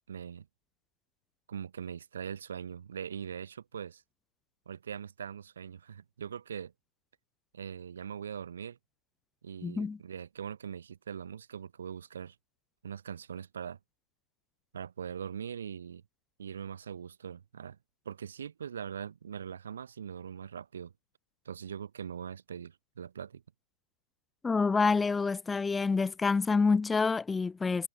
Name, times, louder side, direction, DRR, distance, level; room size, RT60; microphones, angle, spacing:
voice 1, 0.1-0.5 1.5-4.0 4.7-6.7 7.5-8.8 9.4-12.3 12.8-13.8 14.7-16.0 16.4-17.8 18.0-20.9 21.4-23.4, right 8 dB, 65° right, 3.3 m, -41 dB
voice 2, 9.6-10.0 24.4-27.9, left 4 dB, 10° left, 0.7 m, -27 dB
figure-of-eight pair, 105°, 0 cm